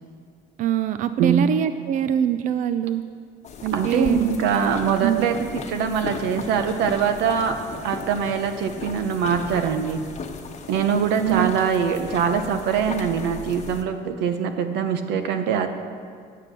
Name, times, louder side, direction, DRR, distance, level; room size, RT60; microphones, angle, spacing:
voice 1, 0.6-3.0 3.6-4.3 5.0-5.3 11.1-11.5, right 10 dB, 50° right, 11 dB, 0.4 m, -23 dB
sound 1, 3.4-13.8, left 5 dB, 45° left, 1.1 m, -36 dB
voice 2, 3.7-7.6 7.8-10.0 10.7-15.7, right 7 dB, 85° right, 8 dB, 0.9 m, -23 dB
9.0 x 7.5 x 6.7 m, 2.1 s
cardioid pair, 110°, 17 cm